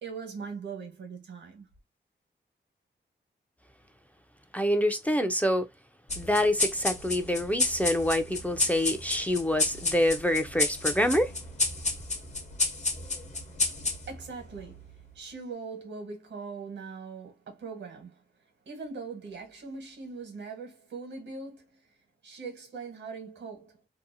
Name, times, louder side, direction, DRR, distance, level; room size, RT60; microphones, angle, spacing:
voice 1, 0.0-1.7 14.1-18.2 18.7-21.8 22.2-23.8, right 4 dB, 90° right, 1.1 m, -41 dB
voice 2, 4.5-5.7 6.2-11.3, left 1 dB, 10° left, 0.3 m, -26 dB
sound 1, 6.1-15.0, left 3 dB, 40° left, 0.7 m, -31 dB
2.6 x 2.0 x 2.6 m
wide cardioid pair, 90°, 18 cm